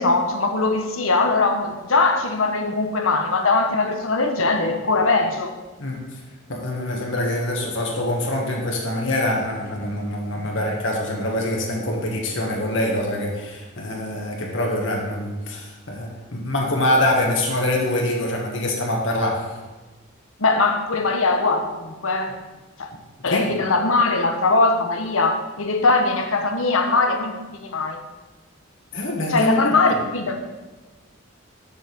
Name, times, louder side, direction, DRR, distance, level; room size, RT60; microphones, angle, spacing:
voice 1, 0.0-5.5 20.4-22.4 22.8-22.9 23.2-28.0 29.3-30.4, left 3 dB, 80° left, 4 dB, 1.1 m, -21 dB
voice 2, 5.8-6.2 6.5-19.5 23.3-23.6 28.9-29.5, left 1 dB, 65° left, -1 dB, 1.5 m, -24 dB
7.1 x 5.8 x 6.9 m, 1.2 s
head